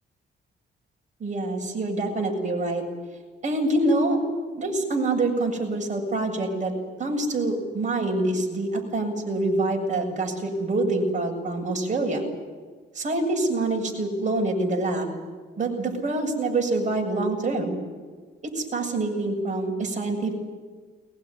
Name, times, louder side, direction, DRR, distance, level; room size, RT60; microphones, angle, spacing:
voice 1, 1.2-2.8 3.4-4.2 4.6-6.7 7.0-12.3 12.9-15.2 15.6-17.8 18.5-20.3, right 2 dB, 40° right, 1 dB, 7.5 m, -26 dB
22.0 x 21.5 x 9.9 m, 1.5 s
cardioid pair, 90°, 20 cm